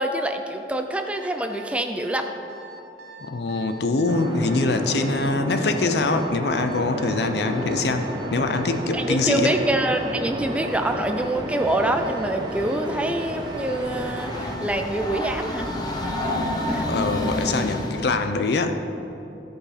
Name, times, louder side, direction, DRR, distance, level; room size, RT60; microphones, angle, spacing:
voice 1, 0.0-2.3 8.9-15.7 16.7-16.9, right 1 dB, 5° right, 5 dB, 0.4 m, -25 dB
Alarm, 1.0-16.9, right 3 dB, 70° right, 0.9 m, -43 dB
voice 2, 3.2-9.6 16.9-18.8, left 3 dB, 70° left, 7 dB, 0.6 m, -24 dB
sound 1, 4.1-14.6, equal, 25° right, 0.8 m, -31 dB
Train, 13.3-18.2, left 1 dB, 25° left, 0.8 m, -29 dB
13.5 x 5.3 x 5.0 m, 2.9 s
head